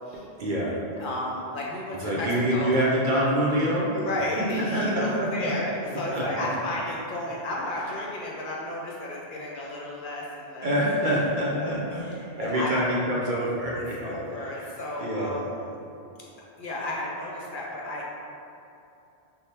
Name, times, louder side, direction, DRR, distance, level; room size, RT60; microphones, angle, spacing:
voice 1, 0.4-0.8 2.0-3.9 4.3-4.4 4.7-5.0 6.1-6.2 10.6-12.0 12.4-14.4 15.0-15.4, equal, 55° right, -5 dB, 0.7 m, -25 dB
voice 2, 1.0-2.7 3.9-10.7 11.0-11.2 11.5-12.7 13.7-15.7 16.6-18.1, left 1 dB, 60° left, -4 dB, 0.7 m, -33 dB
3.4 x 2.0 x 4.1 m, 2.8 s
omnidirectional pair, 1.1 m